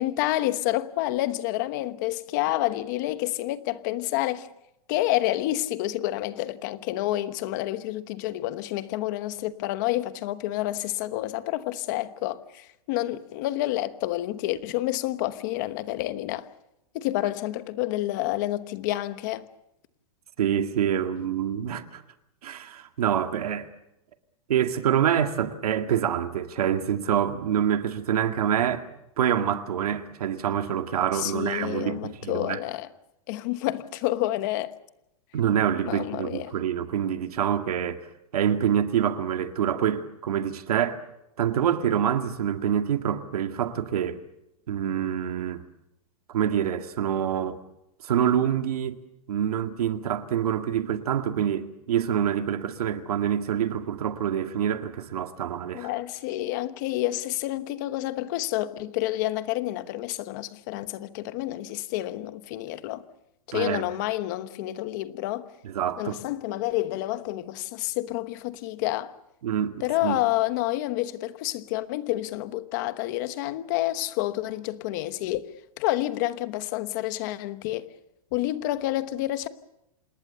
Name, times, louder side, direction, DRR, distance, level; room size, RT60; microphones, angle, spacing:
voice 1, 0.0-4.5 4.9-16.5 16.9-19.5 31.1-32.9 33.3-34.7 35.9-36.5 55.7-63.0 63.5-65.5 66.0-69.1 69.8-75.4 75.8-77.9 78.3-79.5, left 15 dB, 30° left, 1.1 m, -29 dB
voice 2, 20.4-22.0 22.4-23.7 24.5-28.9 29.2-32.6 35.3-38.1 38.3-41.0 41.4-44.2 44.7-45.6 46.3-47.6 48.0-49.0 49.3-55.9 63.5-63.8 65.6-66.2 69.4-70.2, right 9 dB, 90° right, 2.0 m, -26 dB
27.5 x 20.0 x 7.0 m
supercardioid pair, 180°, 19 cm